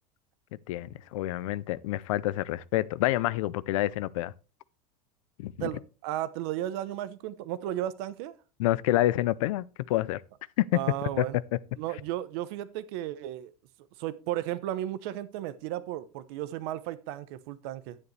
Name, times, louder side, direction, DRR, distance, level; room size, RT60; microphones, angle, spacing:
voice 1, 0.7-4.3 5.4-5.5 8.6-10.2 10.6-10.7 11.2-11.3, left 15 dB, 65° left, 0.5 m, -28 dB
voice 2, 5.6-8.4 10.7-11.4 11.8-13.5 14.0-18.0, right 13 dB, 45° right, 0.8 m, -34 dB
10.5 x 9.7 x 3.2 m
supercardioid pair, 180°, 18 cm